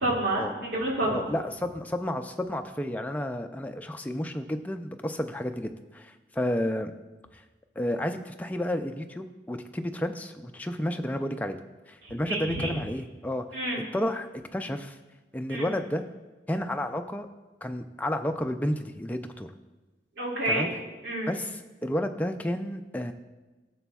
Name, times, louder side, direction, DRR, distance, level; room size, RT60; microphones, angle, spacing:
voice 1, 0.0-1.3 12.0-12.8 13.5-13.8 15.5-15.7 20.2-20.7 21.0-21.3, right 1 dB, 75° right, -4 dB, 2.2 m, -29 dB
voice 2, 1.1-6.9 7.3-7.4 7.8-11.6 11.9-13.5 13.9-14.3 14.5-15.0 15.3-16.0 16.5-17.3 17.6-19.5 20.5-20.7 21.3-23.1, left 1 dB, 10° left, 6 dB, 0.3 m, -31 dB
15.0 x 6.9 x 2.3 m, 1.2 s
head